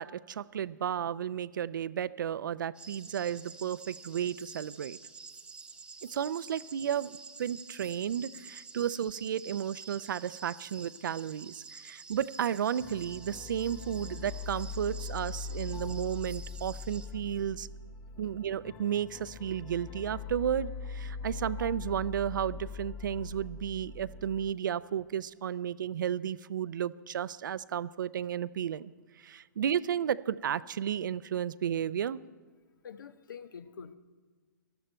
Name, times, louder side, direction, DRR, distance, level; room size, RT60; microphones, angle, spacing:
voice 1, 0.0-5.0 6.0-17.7 18.2-28.9 29.2-32.2, right 9 dB, 75° right, 19 dB, 0.5 m, -33 dB
sound 1, 2.7-17.1, right 5 dB, 10° right, 0.7 m, -49 dB
sound 2, 12.8-24.5, left 5 dB, 25° left, 0.6 m, -41 dB
voice 2, 32.8-34.0, left 7 dB, 75° left, 13 dB, 0.8 m, -46 dB
19.0 x 12.5 x 4.4 m, 1.5 s
hypercardioid pair, 130°, 11 cm